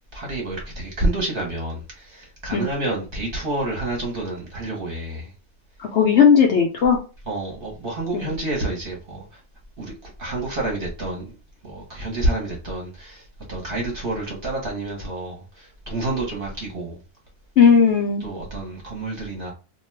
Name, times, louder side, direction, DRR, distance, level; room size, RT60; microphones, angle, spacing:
voice 1, 0.1-5.3 7.3-9.4 9.8-11.3 11.6-17.0 18.2-19.5, right 2 dB, 45° right, 0.9 m, -28 dB
voice 2, 5.8-7.0 8.1-8.3 17.6-18.3, left 6 dB, 65° left, 0.7 m, -16 dB
2.5 x 2.2 x 3.1 m
omnidirectional pair, 1.6 m